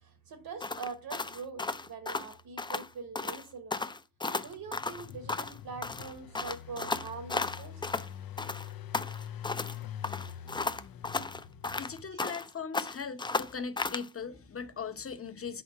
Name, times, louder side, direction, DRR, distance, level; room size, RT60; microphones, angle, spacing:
voice 1, 0.0-3.9 4.4-7.8, right 5 dB, 80° right, 1.3 m, -43 dB
sound 1, 0.6-2.9 3.1-3.4 3.7-5.6 5.8-8.1 8.4-9.8 10.0-12.5 12.7-14.1, left 3 dB, 15° left, 0.4 m, -34 dB
Engine, 4.3-12.4, left 9 dB, 75° left, 0.7 m, -45 dB
voice 2, 11.8-15.6, left 5 dB, 40° left, 0.9 m, -39 dB
5.6 x 4.3 x 4.6 m
cardioid pair, 85°, 35 cm